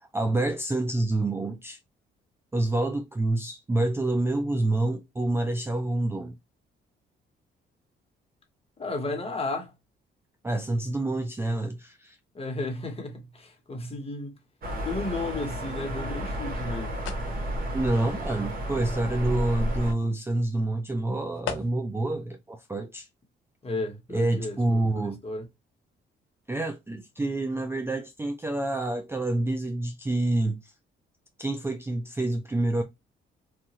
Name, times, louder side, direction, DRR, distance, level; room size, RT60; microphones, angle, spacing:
voice 1, 0.0-1.8 2.5-6.4 10.4-12.2 17.7-23.1 24.1-25.2 26.5-30.7 31.4-32.8, right 2 dB, 10° right, 0.4 m, -27 dB
voice 2, 8.8-9.7 12.3-14.3 14.8-16.9 23.6-25.4, left 2 dB, 30° left, 1.1 m, -33 dB
sound 1, 14.6-19.9, equal, 50° right, 1.3 m, -32 dB
sound 2, 15.7-22.1, left 8 dB, 80° left, 0.7 m, -44 dB
2.9 x 2.4 x 2.9 m
cardioid pair, 90°, 20 cm